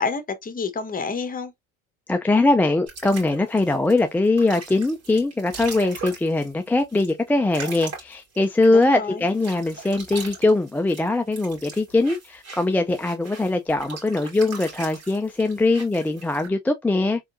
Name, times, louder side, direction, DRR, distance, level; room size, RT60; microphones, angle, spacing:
voice 1, 0.0-1.5 8.7-9.2, left 5 dB, 25° left, 1.1 m, -28 dB
voice 2, 2.1-17.2, left 2 dB, 5° left, 0.3 m, -21 dB
sound 1, 2.9-8.9 9.3-16.5, right 4 dB, 50° right, 2.7 m, -40 dB
3.8 x 3.5 x 2.5 m
supercardioid pair, 95°, 32 cm